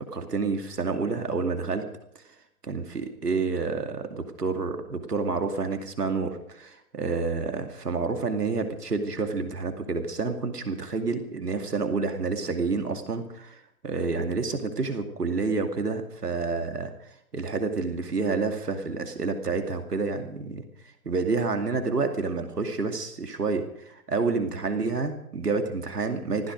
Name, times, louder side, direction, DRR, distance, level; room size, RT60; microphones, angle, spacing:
voice 1, 0.0-1.8 2.6-16.9 17.3-20.6 21.0-26.5, right 4 dB, 90° right, 6 dB, 2.5 m, -29 dB
18.5 x 15.0 x 5.2 m, 0.73 s
hypercardioid pair, 155°, 46 cm